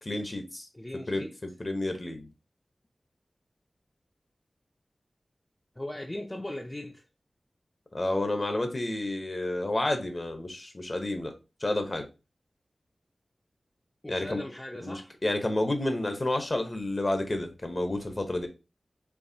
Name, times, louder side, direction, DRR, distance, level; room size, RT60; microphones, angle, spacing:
voice 1, 0.0-0.7 1.1-1.3 1.6-2.3 7.9-11.3 11.6-12.1 14.1-14.4 14.8-18.5, left 1 dB, 40° left, 0.9 m, -30 dB
voice 2, 0.7-1.4 5.8-7.0 14.0-15.1, left 1 dB, 20° left, 0.5 m, -38 dB
4.6 x 2.9 x 2.7 m
wide cardioid pair, 65°, 0 cm